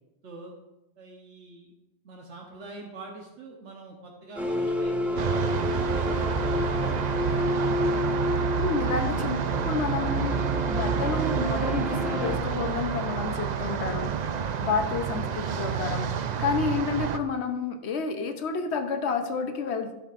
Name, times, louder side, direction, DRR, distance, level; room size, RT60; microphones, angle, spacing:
voice 1, 0.2-0.5 1.0-1.7 2.0-7.2, right 3 dB, 85° right, 0 dB, 1.3 m, -44 dB
sound 1, 4.4-12.4, left 1 dB, ahead, 0.7 m, -30 dB
sound 2, 5.2-17.2, right 7 dB, 60° right, 0.4 m, -29 dB
voice 2, 8.6-9.4 9.7-14.1 14.6-16.1 16.4-19.9, left 5 dB, 75° left, 6 dB, 1.0 m, -30 dB
12.0 x 7.2 x 2.5 m, 1.0 s
omnidirectional pair, 1.2 m